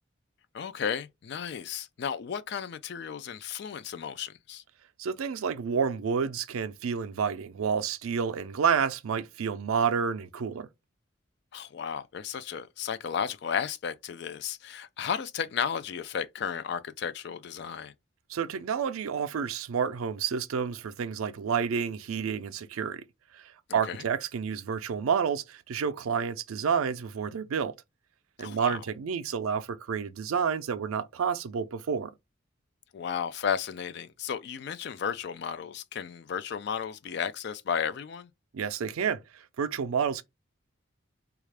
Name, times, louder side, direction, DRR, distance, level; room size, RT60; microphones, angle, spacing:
voice 1, 0.5-4.6 11.5-17.9 23.7-24.0 28.4-28.8 32.9-38.3, left 7 dB, 50° left, 0.3 m, -34 dB
voice 2, 5.0-10.7 18.3-23.0 23.3-27.7 28.4-32.1 38.5-40.2, right 6 dB, 85° right, 0.4 m, -29 dB
3.5 x 2.4 x 3.2 m
head